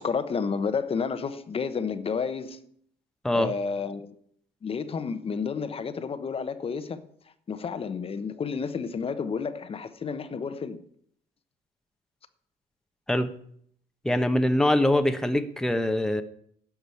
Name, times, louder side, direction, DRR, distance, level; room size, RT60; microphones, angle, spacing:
voice 1, 0.0-2.6 3.3-4.1 4.6-7.1 7.5-10.8, left 5 dB, 35° left, 1.0 m, -31 dB
voice 2, 14.0-16.2, left 1 dB, 5° left, 1.0 m, -23 dB
10.5 x 6.2 x 8.4 m
cardioid pair, 110°, 17 cm